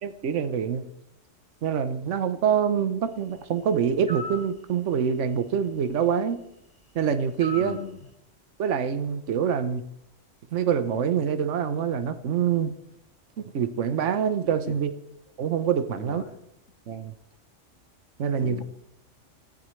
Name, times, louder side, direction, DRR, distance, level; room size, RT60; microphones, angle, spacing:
voice 1, 0.0-0.8 1.6-6.4 6.9-7.8 8.6-9.8 10.5-12.7 13.4-14.9 15.4-16.2 16.9-17.1 18.2-18.6, right 7 dB, 75° right, 11 dB, 1.2 m, -25 dB
sound 1, 4.1-4.5 7.4-7.8, left 1 dB, 5° left, 1.6 m, -35 dB
voice 2, 7.6-8.0 14.6-14.7 16.0-16.4 18.4-18.6, left 6 dB, 75° left, 7 dB, 1.5 m, -39 dB
29.0 x 15.0 x 3.2 m, 0.77 s
omnidirectional pair, 1.3 m